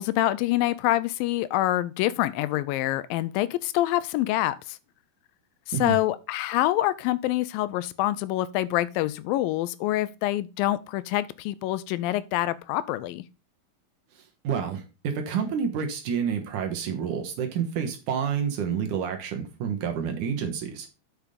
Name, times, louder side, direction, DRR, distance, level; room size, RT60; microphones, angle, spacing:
voice 1, 0.0-4.8 5.8-13.2, left 15 dB, 85° left, 2.2 m, -26 dB
voice 2, 14.4-20.9, right 7 dB, 65° right, 2.5 m, -29 dB
6.9 x 5.9 x 5.1 m
omnidirectional pair, 4.2 m